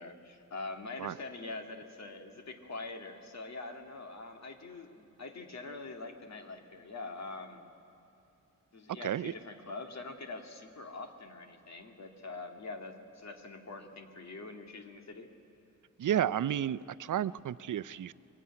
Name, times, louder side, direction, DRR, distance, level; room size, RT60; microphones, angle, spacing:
voice 1, 0.0-7.7 8.7-15.3, left 3 dB, 55° left, 5 dB, 2.1 m, -44 dB
voice 2, 9.0-9.3 16.0-18.1, right 10 dB, 75° right, 17 dB, 0.5 m, -32 dB
23.0 x 22.0 x 9.8 m, 2.8 s
wide cardioid pair, 145°, 31 cm